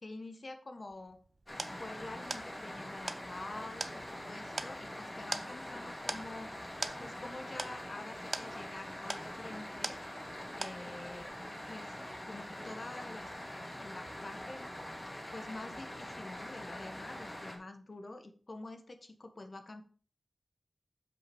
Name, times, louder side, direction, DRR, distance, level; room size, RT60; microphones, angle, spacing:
voice 1, 0.0-1.2 1.8-6.5 7.0-10.0 10.6-11.4 11.7-11.9 12.3-13.4 13.8-14.7 15.3-19.8, left 2 dB, 45° left, 6 dB, 1.5 m, -47 dB
sound 1, 0.9-10.4 10.6-11.2, right 2 dB, 40° right, 0.7 m, -43 dB
sound 2, 1.5-17.6, left 1 dB, 30° left, 2.8 m, -44 dB
7.7 x 6.2 x 5.4 m, 0.42 s
wide cardioid pair, 85°, 0 cm